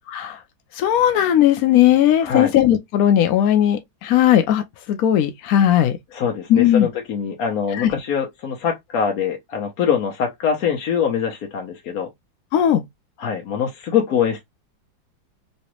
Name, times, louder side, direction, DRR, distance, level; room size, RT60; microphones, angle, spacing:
voice 1, 0.1-0.4 0.7-6.0 6.5-6.9 7.7-7.9 12.5-12.8, left 11 dB, 80° left, 0.7 m, -17 dB
voice 2, 2.2-2.5 6.1-12.1 13.2-14.4, left 7 dB, 60° left, 1.0 m, -23 dB
3.2 x 3.0 x 2.9 m
omnidirectional pair, 2.2 m